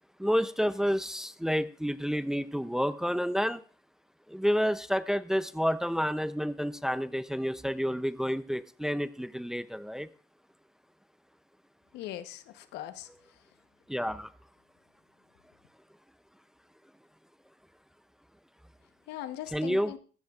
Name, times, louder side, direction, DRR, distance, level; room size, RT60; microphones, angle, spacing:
voice 1, 0.2-3.6 4.3-10.1 13.9-14.3 19.5-19.9, equal, 5° right, 14 dB, 0.5 m, -29 dB
voice 2, 11.9-13.1 19.1-20.0, left 12 dB, 85° left, 11 dB, 1.0 m, -40 dB
16.5 x 13.0 x 2.4 m, 0.39 s
cardioid pair, 110°, 17 cm